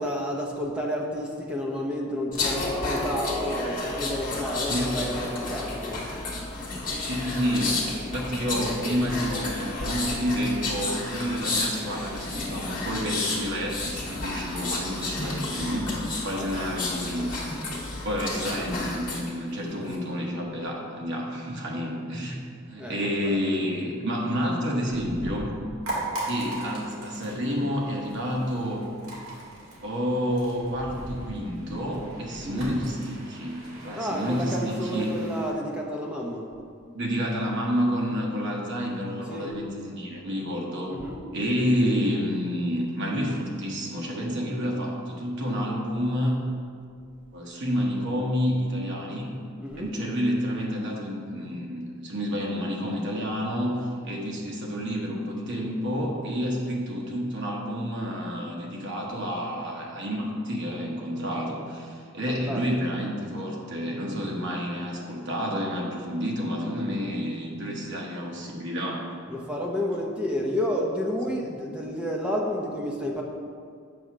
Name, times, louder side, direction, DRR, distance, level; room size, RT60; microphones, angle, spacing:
voice 1, 0.0-6.1 16.2-16.5 22.8-23.4 25.0-25.4 30.7-31.3 32.4-32.6 33.9-36.5 39.2-39.6 40.9-41.2 49.6-49.9 62.2-62.7 69.3-73.2, equal, 5° right, -2 dB, 0.5 m, -31 dB
sound 1, 2.3-19.3 19.7-19.9, left 2 dB, 40° left, 1.3 m, -31 dB
voice 2, 7.0-15.9 16.2-17.4 18.0-22.4 22.7-25.5 26.3-28.8 29.8-35.1 36.9-40.9 41.3-46.4 47.3-49.3 49.8-69.0, equal, 55° right, -2 dB, 1.1 m, -29 dB
sound 2, 25.8-35.5, right 1 dB, 70° right, 1.6 m, -39 dB
7.6 x 2.8 x 6.0 m, 2.2 s
head